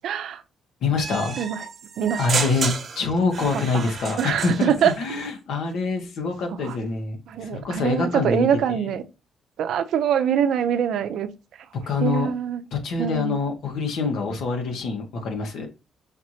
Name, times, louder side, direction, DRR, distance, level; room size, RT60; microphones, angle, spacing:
voice 1, 0.0-0.4 1.4-1.6 2.0-2.5 3.4-3.9 4.2-4.9 6.5-6.8 7.3-9.0 9.6-11.3 12.0-12.6 13.0-13.4, right 8 dB, 75° right, 0.6 m, -24 dB
voice 2, 0.8-1.4 2.2-8.5 11.9-12.3 12.7-15.7, left 4 dB, 75° left, 1.4 m, -25 dB
sound 1, 1.0-5.0, right 5 dB, 45° right, 1.0 m, -31 dB
5.7 x 3.1 x 2.7 m
cardioid pair, 90°, 0 cm